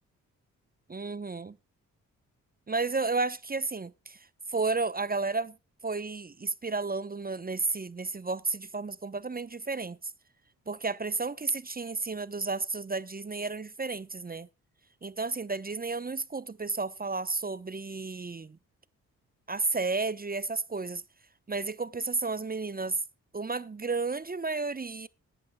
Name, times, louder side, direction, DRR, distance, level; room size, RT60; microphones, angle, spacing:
voice 1, 0.9-1.6 2.7-4.2 4.5-5.6 5.8-10.1 10.7-14.5 15.0-18.6 19.5-21.0 21.5-23.0 23.3-25.1, right 3 dB, 25° right, 0.8 m, -32 dB
19.0 x 11.0 x 2.3 m
hypercardioid pair, 40°, 37 cm